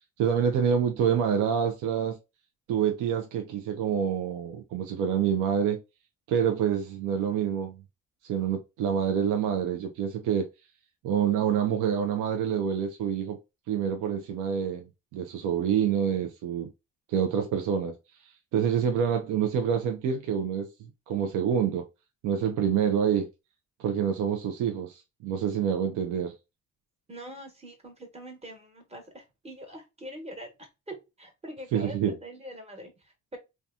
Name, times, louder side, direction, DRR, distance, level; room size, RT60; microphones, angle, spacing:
voice 1, 0.2-2.2 2.7-5.8 6.3-7.7 8.2-10.5 11.0-13.4 13.7-14.8 15.1-16.7 17.1-20.7 21.1-21.9 22.2-23.3 23.8-26.3 31.7-32.1, right 8 dB, 90° right, 0.5 m, -27 dB
voice 2, 27.1-33.4, equal, 20° right, 1.1 m, -43 dB
2.7 x 2.3 x 2.3 m
cardioid pair, 90°, 30 cm